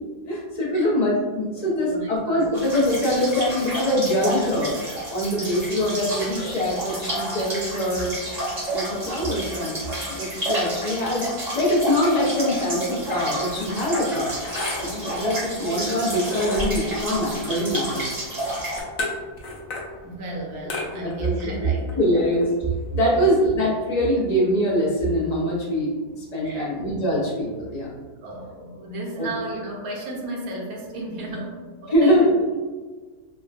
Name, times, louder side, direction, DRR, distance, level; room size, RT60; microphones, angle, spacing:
voice 1, 0.3-4.7 5.1-8.2 8.7-9.8 10.1-14.3 14.8-18.1 20.9-22.5 22.9-28.0 29.2-29.3 31.9-32.4, equal, 45° left, -6 dB, 0.5 m, -23 dB
voice 2, 1.5-2.5 20.0-22.3 23.1-23.3 26.4-26.7 28.2-32.3, right 2 dB, 85° right, -2 dB, 1.1 m, -34 dB
sound 1, 2.5-18.8, right 1 dB, 35° right, 0.7 m, -30 dB
sound 2, 13.4-23.1, left 2 dB, 75° left, 1.0 m, -35 dB
3.4 x 2.2 x 2.3 m, 1.4 s
omnidirectional pair, 1.5 m